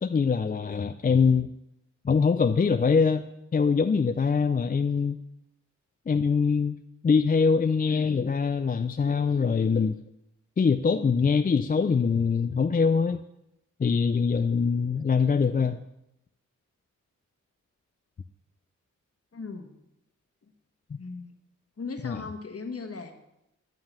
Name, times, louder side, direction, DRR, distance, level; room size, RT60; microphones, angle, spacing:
voice 1, 0.0-1.5 2.0-3.2 3.5-5.2 6.1-6.8 7.0-10.0 10.6-13.2 13.8-15.8 20.9-21.0 22.0-22.2, left 5 dB, 30° left, 9 dB, 0.4 m, -23 dB
voice 2, 19.3-19.7 21.0-21.3 21.8-23.1, left 4 dB, 50° left, 5 dB, 1.4 m, -37 dB
11.0 x 3.8 x 7.4 m, 0.85 s
cardioid pair, 50°, 31 cm